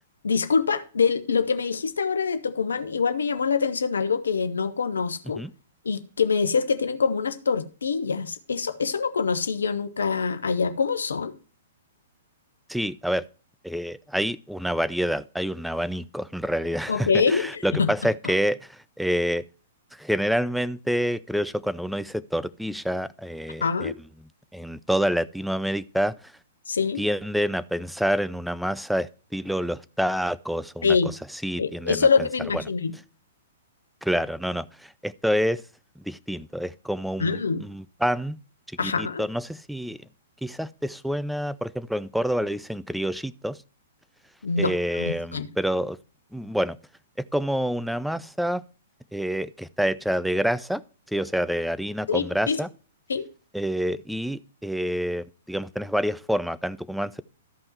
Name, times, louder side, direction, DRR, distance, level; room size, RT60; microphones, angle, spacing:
voice 1, 0.2-5.4 5.8-11.3 16.9-17.9 18.2-18.3 23.6-23.9 26.7-27.0 30.8-31.1 31.6-32.9 37.2-37.6 38.8-39.2 44.4-44.7 45.0-45.5 52.1-52.6 53.1-53.3, left 5 dB, 65° left, 1.0 m, -25 dB
voice 2, 12.7-13.3 13.6-19.4 19.9-23.9 24.5-26.2 27.0-31.0 31.4-32.3 32.5-32.6 34.0-35.6 36.0-38.4 38.8-40.0 40.4-43.6 44.6-46.0 46.3-46.8 47.2-48.6 49.1-50.8 51.1-52.7 53.5-57.2, equal, ahead, 0.4 m, -27 dB
13.5 x 5.4 x 4.5 m
figure-of-eight pair, 110°, 0 cm